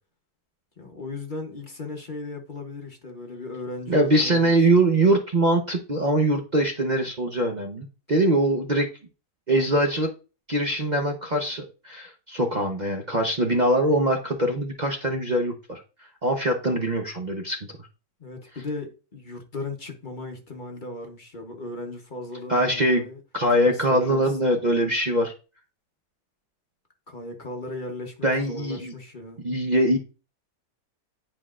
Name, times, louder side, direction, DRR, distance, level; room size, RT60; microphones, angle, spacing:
voice 1, 0.8-4.7 18.2-23.2 23.5-24.2 27.1-29.4, left 2 dB, 35° left, 0.9 m, -37 dB
voice 2, 3.9-8.9 9.5-10.1 10.5-15.8 16.2-17.6 22.5-23.0 23.3-25.3 28.2-28.9 29.4-30.0, right 1 dB, 40° right, 0.6 m, -22 dB
9.6 x 4.7 x 2.4 m
omnidirectional pair, 1.8 m